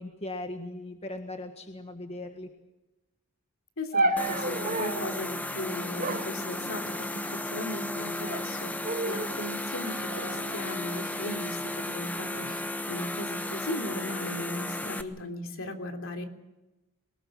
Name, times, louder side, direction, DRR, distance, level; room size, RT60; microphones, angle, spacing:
voice 1, 0.0-2.5, left 2 dB, 30° left, 5 dB, 1.6 m, -38 dB
voice 2, 3.8-16.3, left 1 dB, 65° left, 5 dB, 3.3 m, -37 dB
sound 1, 3.9-5.2 6.0-7.2 8.0-8.5 8.8-9.4 10.1-11.4 12.2-12.6, right 2 dB, 40° right, 1.9 m, -32 dB
sound 2, 4.2-15.0, left 1 dB, 5° left, 1.2 m, -34 dB
23.0 x 20.0 x 7.6 m, 1.0 s
head